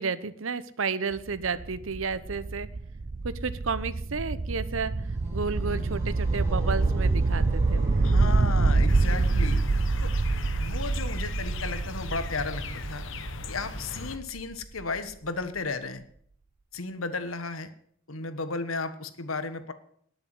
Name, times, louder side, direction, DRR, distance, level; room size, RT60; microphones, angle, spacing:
voice 1, 0.0-2.7 3.2-4.9 5.3-7.9, right 4 dB, 75° right, 15 dB, 0.9 m, -32 dB
sound 1, 1.1-14.8, right 3 dB, 40° right, 0.5 m, -26 dB
sound 2, 4.9-9.6, left 1 dB, 15° right, 4.6 m, -42 dB
voice 2, 8.0-9.6 10.0-10.1 10.6-13.0 13.5-16.0 16.7-17.7 18.1-19.7, left 3 dB, 85° left, 10 dB, 1.4 m, -34 dB
sound 3, 8.9-14.2, left 4 dB, 65° left, 1.2 m, -39 dB
19.5 x 7.0 x 7.8 m, 0.64 s
head